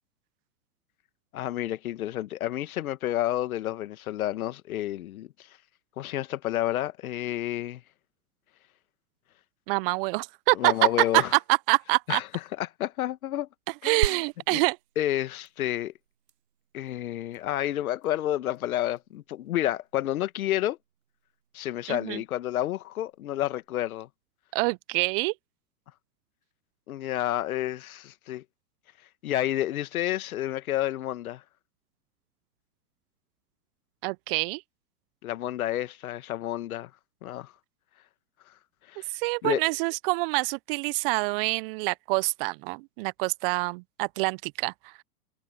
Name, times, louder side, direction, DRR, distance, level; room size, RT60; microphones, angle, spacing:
voice 1, 1.3-5.3 6.0-7.8 10.6-11.3 12.1-12.2 12.6-13.5 13.8-14.2 14.5-14.6 15.0-15.9 16.7-20.8 21.5-24.1 26.9-28.4 29.2-31.4 35.2-36.9 37.2-37.5 38.9-39.0 39.4-39.6, left 13 dB, 60° left, 1.8 m, -30 dB
voice 2, 9.7-12.2 13.8-14.8 21.9-22.2 24.5-25.3 34.0-34.6 39.1-44.9, right 27 dB, 35° right, 0.8 m, -26 dB
sound 1, 14.0-24.0, right 10 dB, 80° right, 0.9 m, -40 dB
hypercardioid pair, 110°, 48 cm